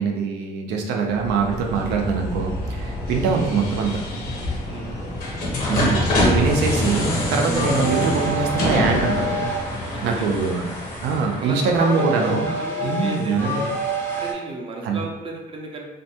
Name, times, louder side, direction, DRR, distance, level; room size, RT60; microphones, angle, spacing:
voice 1, 0.0-4.0 5.7-9.5 10.0-10.8 11.0-12.5 12.8-13.7 14.8-15.0, right 4 dB, 80° right, 2 dB, 0.5 m, -23 dB
sound 1, 1.1-11.8, left 1 dB, 60° left, 0.7 m, -26 dB
voice 2, 4.6-5.0 9.9-10.3 11.3-13.7 14.1-15.9, right 2 dB, 30° right, 0 dB, 0.5 m, -34 dB
sound 2, 7.5-14.3, right 2 dB, 10° left, 0.6 m, -29 dB
2.5 x 2.2 x 2.7 m, 1.1 s
cardioid pair, 110°, 17 cm